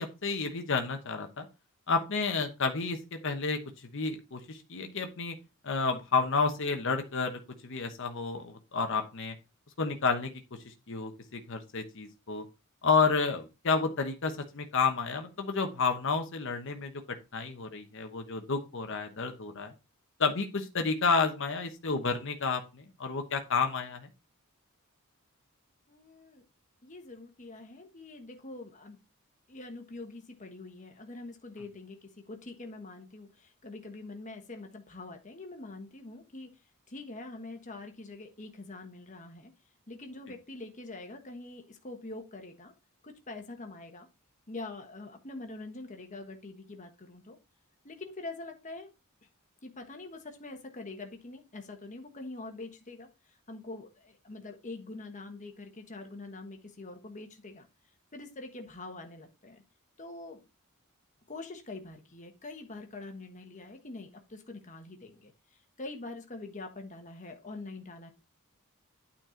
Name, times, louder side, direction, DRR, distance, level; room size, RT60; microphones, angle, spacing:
voice 1, 0.0-1.5 1.9-3.6 3.9-5.4 5.6-9.3 9.8-12.4 12.8-16.9 17.3-19.7 20.2-24.1, left 4 dB, 60° left, 6 dB, 1.0 m, -30 dB
voice 2, 25.9-26.4 26.8-29.0 29.5-36.5 36.9-39.5 39.9-42.7 43.0-44.1 44.5-47.4 47.8-48.9 49.6-57.7 58.1-59.6 60.0-60.4 61.3-68.1, left 2 dB, 35° left, 4 dB, 1.3 m, -44 dB
9.1 x 4.3 x 4.4 m, 0.28 s
head